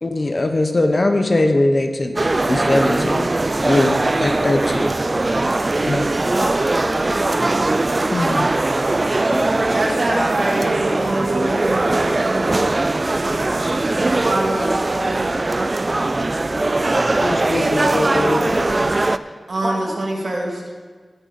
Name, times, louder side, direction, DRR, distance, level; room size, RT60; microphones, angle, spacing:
voice 1, 0.0-3.3 3.6-5.1 5.8-6.1 8.1-8.5 17.2-18.9, left 2 dB, 45° left, 6 dB, 0.9 m, -21 dB
sound 1, 2.2-19.2, right 2 dB, 40° right, 0.4 m, -20 dB
voice 2, 6.2-7.8 9.3-10.0 19.1-19.9, equal, 15° left, 0 dB, 2.2 m, -31 dB
voice 3, 9.7-12.7 14.0-15.4 19.5-20.6, right 1 dB, 65° right, -2 dB, 2.5 m, -24 dB
17.0 x 6.4 x 5.4 m, 1.4 s
wide cardioid pair, 70°, 0 cm